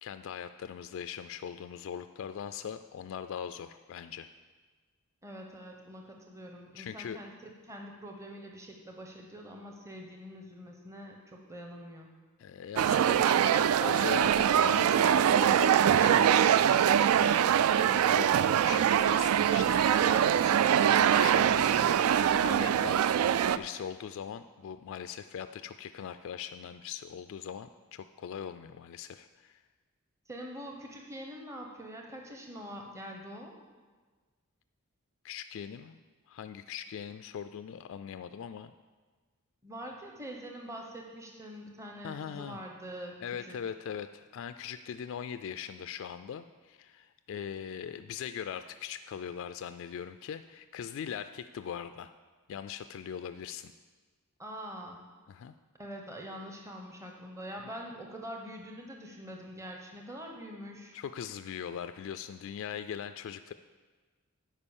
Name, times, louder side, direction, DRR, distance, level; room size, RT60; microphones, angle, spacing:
voice 1, 0.0-4.3 6.7-7.2 12.4-16.4 16.7-29.6 35.2-36.0 36.3-38.7 42.0-42.6 43.2-52.1 52.5-53.7 55.3-55.5 60.9-63.5, left 8 dB, 65° left, 11 dB, 0.3 m, -41 dB
voice 2, 5.2-7.3 7.7-12.1 30.3-33.5 39.6-43.1 43.4-43.6 54.4-55.0 55.8-60.9, equal, 15° right, 1 dB, 0.8 m, -44 dB
sound 1, 12.8-23.6, right 9 dB, 85° right, 0.3 m, -23 dB
9.7 x 5.0 x 7.1 m, 1.4 s
head